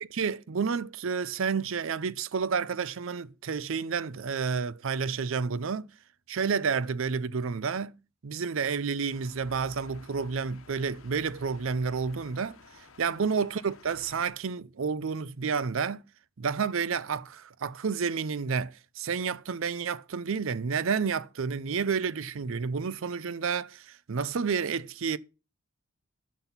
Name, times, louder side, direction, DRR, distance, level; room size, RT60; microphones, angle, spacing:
voice 1, 0.0-5.9 6.3-8.0 8.2-12.6 13.0-16.0 16.4-25.2, right 5 dB, 65° right, 0.5 m, -30 dB
sound 1, 9.1-14.3, left 3 dB, 70° left, 1.2 m, -53 dB
10.5 x 6.2 x 5.7 m
head